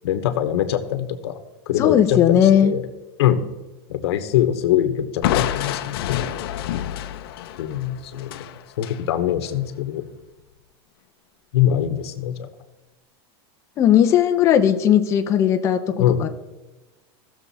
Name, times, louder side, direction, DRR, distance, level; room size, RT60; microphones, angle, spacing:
voice 1, 0.0-1.4 1.7-2.8 3.2-3.4 3.9-6.2 7.6-8.3 8.8-10.0 11.5-12.5 16.0-16.3, left 11 dB, 80° left, 9 dB, 1.2 m, -23 dB
voice 2, 1.8-2.7 13.8-16.3, left 9 dB, 20° left, 5 dB, 0.6 m, -17 dB
Crushing, 5.2-9.0, left 11 dB, 65° left, 0.8 m, -27 dB
16.5 x 7.0 x 4.2 m, 1.1 s
supercardioid pair, 175°, 14 cm